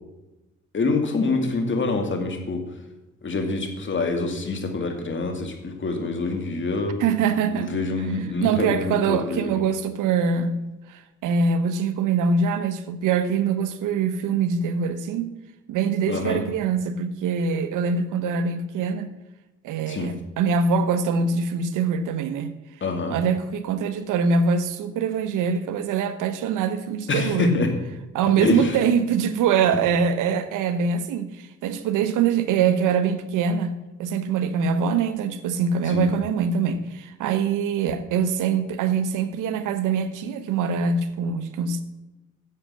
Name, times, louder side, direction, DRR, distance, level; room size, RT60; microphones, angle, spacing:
voice 1, 0.7-2.6 3.2-7.0 7.5-9.6 16.1-16.4 19.9-20.1 22.8-23.2 27.1-27.7 28.4-28.7 35.9-36.1, left 3 dB, 40° left, 2.3 m, -26 dB
voice 2, 7.0-7.7 8.0-10.6 10.9-15.3 15.7-19.1 19.6-22.6 23.1-27.6 28.1-41.8, right 6 dB, 90° right, 1.1 m, -24 dB
10.0 x 7.8 x 6.2 m
cardioid pair, 90°, 30 cm